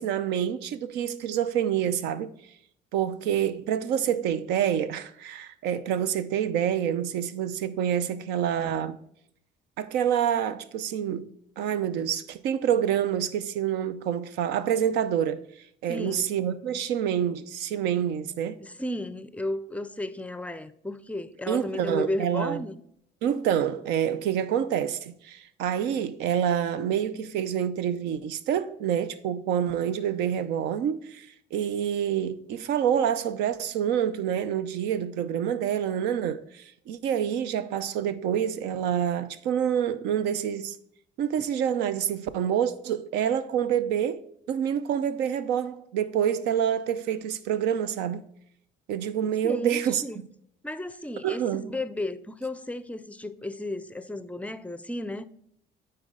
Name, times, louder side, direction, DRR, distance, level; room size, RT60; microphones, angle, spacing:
voice 1, 0.0-2.3 2.9-9.0 9.8-11.3 11.6-15.4 15.8-18.6 21.5-22.6 23.2-40.8 41.2-44.2 44.5-48.2 48.9-50.3 51.2-51.7, right 9 dB, 85° right, 0.6 m, -27 dB
voice 2, 15.9-16.3 18.6-22.8 49.4-50.2 50.6-55.3, left 1 dB, 10° left, 0.4 m, -34 dB
9.0 x 4.4 x 3.7 m
cardioid pair, 110°, 17 cm